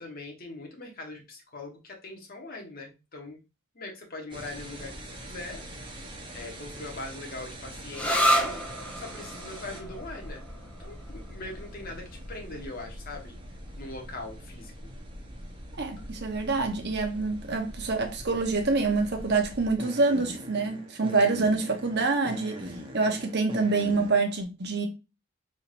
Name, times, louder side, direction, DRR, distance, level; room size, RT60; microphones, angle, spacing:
voice 1, 0.0-3.4 3.7-4.9 5.2-8.6 9.0-10.4 10.8-13.4 13.8-14.7 21.1-21.3, left 2 dB, 45° left, 1.3 m, -41 dB
sound 1, 4.3-24.1, equal, 25° right, 1.0 m, -43 dB
sound 2, 7.9-15.3, equal, 5° left, 0.7 m, -32 dB
voice 2, 15.8-22.7 22.9-24.9, right 3 dB, 55° right, 1.0 m, -26 dB
4.4 x 3.7 x 2.6 m
head